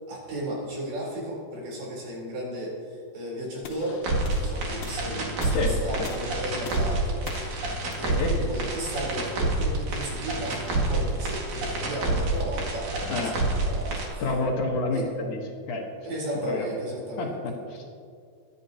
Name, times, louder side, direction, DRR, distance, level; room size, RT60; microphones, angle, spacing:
voice 1, 0.1-4.1 4.4-7.2 8.0-14.2 14.9-15.1 16.0-17.4, right 1 dB, 80° right, -4 dB, 5.7 m, -34 dB
sound 1, 3.6-9.7, left 6 dB, 80° left, 2.7 m, -45 dB
sound 2, 4.0-14.1, right 2 dB, 55° right, 3.2 m, -28 dB
voice 2, 5.5-6.1 8.0-8.4 13.1-13.4 14.2-15.4 15.7-15.9 16.4-16.7 17.2-17.9, left 3 dB, 65° left, 1 dB, 2.4 m, -29 dB
22.5 x 11.0 x 2.9 m, 2.2 s
omnidirectional pair, 4.3 m